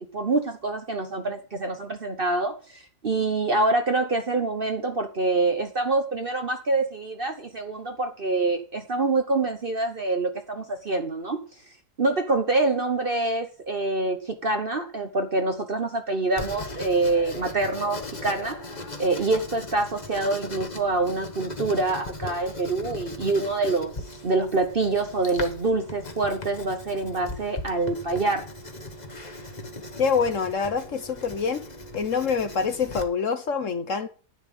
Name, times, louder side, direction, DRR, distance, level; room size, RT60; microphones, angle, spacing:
voice 1, 0.1-11.4 12.0-24.0 24.2-28.5, right 3 dB, 40° right, 6 dB, 1.1 m, -26 dB
Writing, 16.4-33.0, left 2 dB, 30° left, 1.4 m, -38 dB
voice 2, 30.0-31.6 31.9-34.1, left 5 dB, 55° left, 10 dB, 1.3 m, -25 dB
10.5 x 9.5 x 5.4 m, 0.37 s
omnidirectional pair, 1.7 m